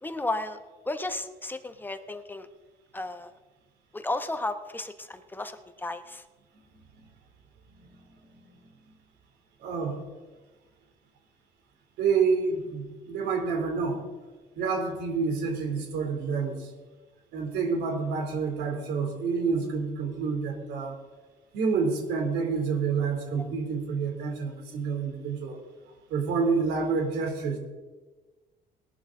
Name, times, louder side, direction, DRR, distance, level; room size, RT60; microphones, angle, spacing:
voice 1, 0.0-0.6 0.9-2.5 2.9-3.3 3.9-6.2 23.4-23.5, left 2 dB, 10° left, 9 dB, 1.0 m, -33 dB
voice 2, 9.6-10.0 12.0-14.0 14.5-16.7 17.3-21.0 21.5-25.6 26.1-27.6, right 5 dB, 85° right, 3 dB, 3.2 m, -28 dB
20.0 x 11.5 x 3.9 m, 1.3 s
cardioid pair, 110°, 17 cm